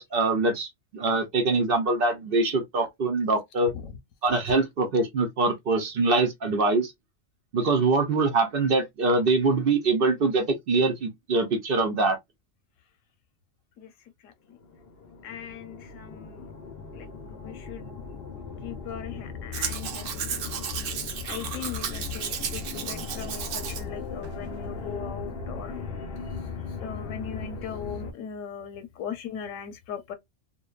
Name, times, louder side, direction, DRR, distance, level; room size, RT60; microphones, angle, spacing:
voice 1, 0.0-3.7 4.2-6.9 7.5-12.2, right 3 dB, 55° right, 0.7 m, -24 dB
voice 2, 14.2-14.6 15.2-16.5 16.9-18.2 18.6-20.3 21.2-25.8 26.8-30.1, left 8 dB, 90° left, 1.0 m, -39 dB
sound 1, 14.5-28.1, left 5 dB, 60° left, 0.7 m, -38 dB
Domestic sounds home sounds, 19.5-23.8 24.2-24.3, right 7 dB, 85° right, 1.0 m, -34 dB
2.6 x 2.1 x 2.3 m
omnidirectional pair, 1.3 m